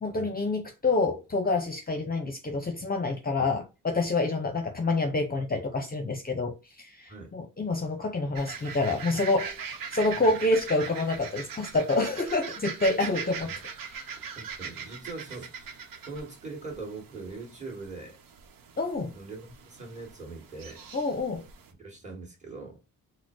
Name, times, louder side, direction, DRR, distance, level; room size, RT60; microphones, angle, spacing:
voice 1, 0.0-9.5 9.9-13.5 13.9-14.0 18.8-19.1 20.9-21.5, left 2 dB, 25° left, 0.7 m, -27 dB
sound 1, 8.4-21.7, right 6 dB, 90° right, 0.9 m, -41 dB
voice 2, 14.3-15.8 16.1-18.2 19.1-20.8 21.7-22.8, right 3 dB, 20° right, 2.1 m, -42 dB
4.3 x 2.2 x 4.6 m
wide cardioid pair, 115°, 33 cm